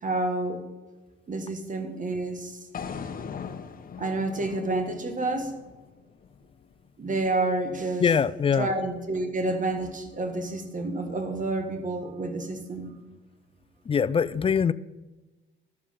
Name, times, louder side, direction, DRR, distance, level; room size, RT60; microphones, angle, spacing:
voice 1, 0.0-0.6 1.3-2.6 4.0-5.5 7.0-8.1 8.6-12.9, right 2 dB, 40° right, 1.6 m, -29 dB
sound 1, 2.7-6.9, left 6 dB, 45° left, 0.9 m, -40 dB
voice 2, 8.0-8.7 13.8-14.7, left 6 dB, 30° left, 0.4 m, -23 dB
12.0 x 7.2 x 5.7 m
cardioid pair, 90°, 20 cm